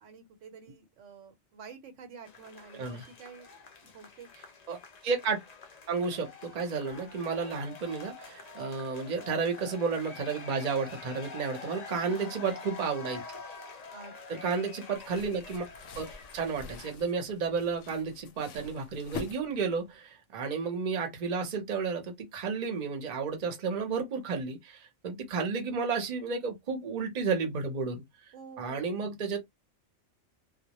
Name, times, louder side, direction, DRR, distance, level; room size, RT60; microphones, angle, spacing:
voice 1, 0.0-4.3 11.6-12.4 13.9-14.6 28.3-29.2, right 5 dB, 90° right, 1.0 m, -50 dB
sound 1, 2.2-16.9, left 5 dB, 55° left, 0.4 m, -47 dB
voice 2, 5.0-5.4 5.9-13.2 14.3-15.7 16.0-16.1 16.3-28.0 28.6-29.4, right 5 dB, 45° right, 0.7 m, -32 dB
sound 2, 14.9-19.9, left 4 dB, 85° left, 0.9 m, -45 dB
2.1 x 2.0 x 2.8 m
omnidirectional pair, 1.2 m